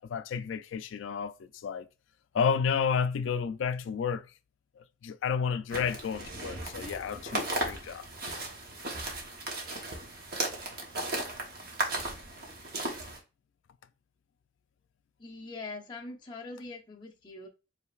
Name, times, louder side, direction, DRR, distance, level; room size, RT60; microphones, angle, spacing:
voice 1, 0.1-1.9 2.3-4.2 4.8-8.1, left 6 dB, 60° left, 0.3 m, -31 dB
sound 1, 5.7-13.2, right 2 dB, 45° right, 1.0 m, -36 dB
voice 2, 15.2-17.5, left 3 dB, 20° left, 0.7 m, -42 dB
4.9 x 3.1 x 2.4 m
head